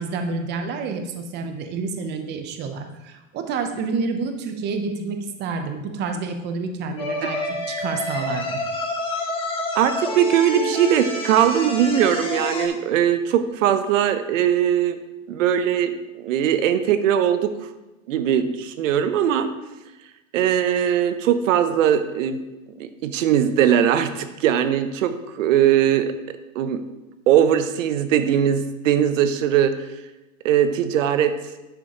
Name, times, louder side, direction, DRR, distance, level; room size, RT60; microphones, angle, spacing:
voice 1, 0.0-8.6, right 4 dB, 25° right, 6 dB, 0.8 m, -29 dB
sound 1, 7.0-12.7, left 1 dB, 15° left, 1.1 m, -28 dB
voice 2, 9.7-15.0 15.3-15.9 16.2-17.5 18.1-19.5 20.3-22.4 22.8-26.1 26.5-26.8 27.3-29.7 30.4-31.4, right 9 dB, 60° right, 10 dB, 0.9 m, -20 dB
10.0 x 6.0 x 3.0 m, 1.0 s
hypercardioid pair, 135°, 42 cm